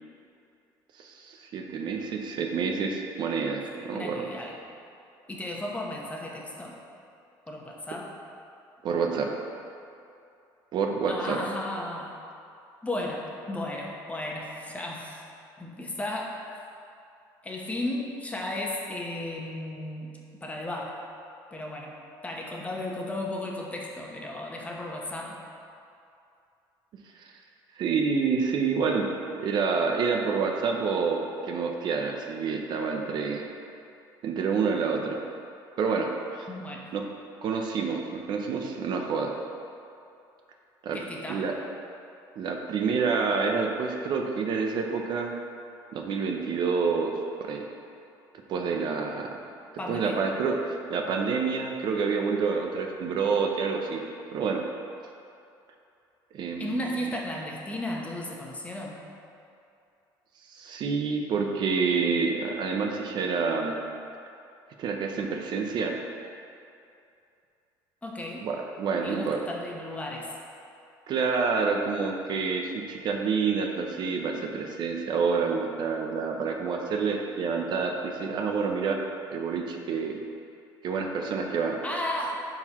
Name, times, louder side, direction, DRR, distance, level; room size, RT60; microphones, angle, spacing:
voice 1, 1.0-3.6 3.8-4.3 8.8-9.3 10.7-11.4 27.2-27.3 27.8-29.1 29.4-33.4 34.2-35.2 35.8-36.5 36.9-37.0 37.4-39.3 40.8-41.0 41.3-41.5 42.4-45.3 45.9-47.1 47.4-47.6 48.5-49.3 49.9-54.0 54.3-54.6 56.3-57.1 60.5-63.8 64.8-66.0 68.4-69.4 71.1-79.0 79.3-80.2 80.8-81.8, right 5 dB, 55° right, 2 dB, 0.6 m, -28 dB
voice 2, 3.9-4.6 5.3-6.8 7.5-8.1 11.1-12.2 12.8-15.2 15.6-16.4 17.4-20.1 20.4-20.9 21.5-21.9 22.2-25.4 36.5-36.8 40.9-41.5 49.8-50.2 56.6-59.0 68.0-68.5 69.0-70.3 81.8-82.4, left 1 dB, 15° left, -2 dB, 1.0 m, -34 dB
10.5 x 4.0 x 3.0 m, 2.6 s
cardioid pair, 110°, 9 cm